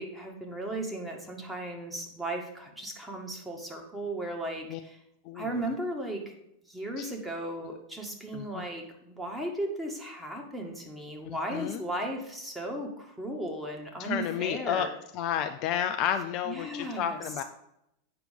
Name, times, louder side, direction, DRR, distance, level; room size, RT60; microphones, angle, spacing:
voice 1, 0.0-5.0 5.3-6.2 6.7-14.9 16.4-17.2, right 1 dB, 5° right, 0 dB, 1.9 m, -36 dB
voice 2, 8.3-8.6 11.3-11.8 14.0-14.9 15.1-17.4, left 9 dB, 40° left, 7 dB, 0.5 m, -31 dB
8.7 x 6.0 x 5.2 m, 0.81 s
figure-of-eight pair, 90°, 0 cm